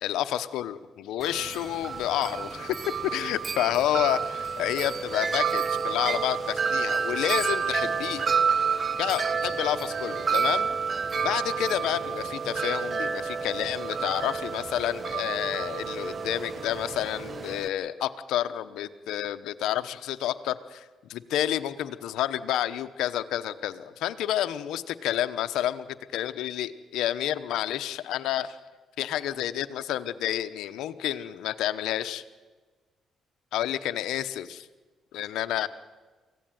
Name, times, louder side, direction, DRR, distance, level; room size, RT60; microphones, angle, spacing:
voice 1, 0.0-8.3 9.0-10.7 11.2-20.8 21.1-25.9 26.1-28.6 29.0-32.2 33.5-34.7 35.1-35.7, left 12 dB, 85° left, 10 dB, 1.0 m, -29 dB
Wind chime, 1.2-17.7, right 6 dB, 40° right, 1.0 m, -29 dB
24.5 x 16.0 x 9.4 m, 1.4 s
cardioid pair, 90°, 0 cm